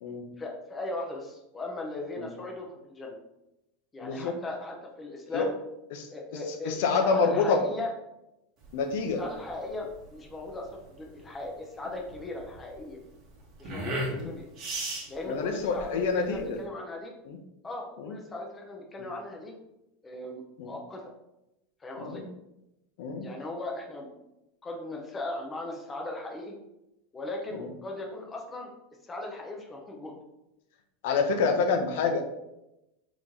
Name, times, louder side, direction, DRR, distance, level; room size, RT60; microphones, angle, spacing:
voice 1, 0.4-3.2 3.9-5.5 6.1-6.7 7.0-7.9 9.2-13.0 13.6-14.5 15.1-17.1 17.6-19.5 20.0-21.1 21.8-22.2 23.2-24.3 24.6-26.5 27.1-28.7 29.0-30.1 31.1-31.5, left 2 dB, 15° left, 0 dB, 0.6 m, -38 dB
voice 2, 4.0-4.4 5.3-5.5 5.9-6.1 6.6-7.6 8.7-9.2 14.1-14.3 15.3-16.6 17.3-17.4 18.0-18.2 20.6-20.8 22.0-22.2 23.0-23.3 27.5-27.7 31.0-32.2, left 4 dB, 65° left, 4 dB, 0.7 m, -27 dB
sound 1, 8.6-16.6, right 1 dB, 35° right, 1.1 m, -38 dB
4.0 x 3.1 x 3.6 m, 0.90 s
supercardioid pair, 160°, 0 cm